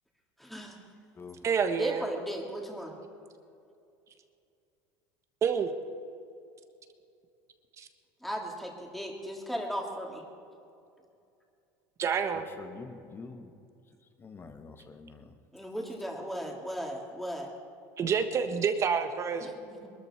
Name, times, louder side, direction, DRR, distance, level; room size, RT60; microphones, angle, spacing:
voice 1, 0.4-0.8 1.8-2.9 8.2-10.2 15.5-17.5 19.4-19.9, equal, ahead, -1 dB, 3.1 m, -36 dB
voice 2, 1.4-2.0 5.4-5.7 7.8-7.9 12.0-12.4 18.0-19.5, right 6 dB, 35° right, 8 dB, 1.4 m, -28 dB
voice 3, 12.6-13.5 14.2-15.3, left 4 dB, 25° left, 7 dB, 1.7 m, -46 dB
22.0 x 13.5 x 4.6 m, 2.5 s
supercardioid pair, 105°, 8 cm